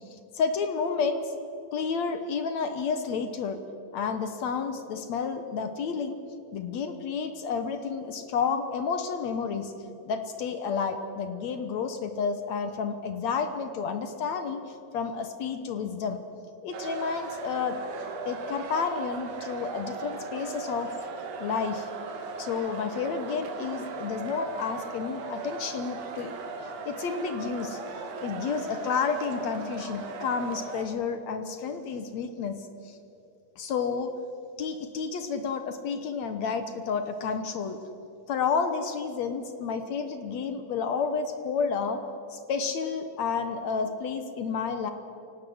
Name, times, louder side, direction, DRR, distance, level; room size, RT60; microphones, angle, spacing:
voice 1, 0.1-1.3 1.7-3.6 3.9-6.2 6.5-9.7 10.1-16.2 16.6-17.8 18.3-20.9 21.4-21.9 22.4-26.3 26.6-27.8 28.2-33.0 33.6-34.1 34.6-37.8 38.3-42.0 42.3-44.9, left 5 dB, 65° left, 8 dB, 1.9 m, -30 dB
sound 1, 16.7-30.9, right 4 dB, 85° right, 3.9 m, -38 dB
28.0 x 18.0 x 7.9 m, 2.8 s
omnidirectional pair, 4.2 m